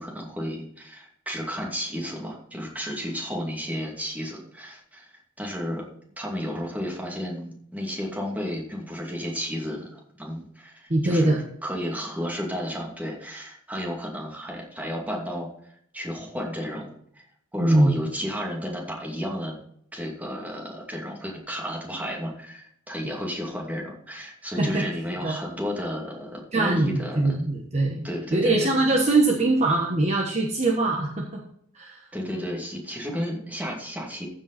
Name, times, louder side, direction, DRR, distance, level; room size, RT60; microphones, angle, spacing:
voice 1, 0.0-5.1 5.4-5.9 6.2-15.5 15.9-17.2 17.5-19.6 19.9-27.3 28.0-28.7 32.1-34.3, equal, 10° right, -2 dB, 2.5 m, -32 dB
voice 2, 10.9-11.4 17.6-17.9 24.6-24.8 25.2-25.4 26.5-31.4 31.7-32.0, right 2 dB, 35° right, -1 dB, 1.2 m, -22 dB
14.5 x 5.5 x 4.2 m, 0.68 s
head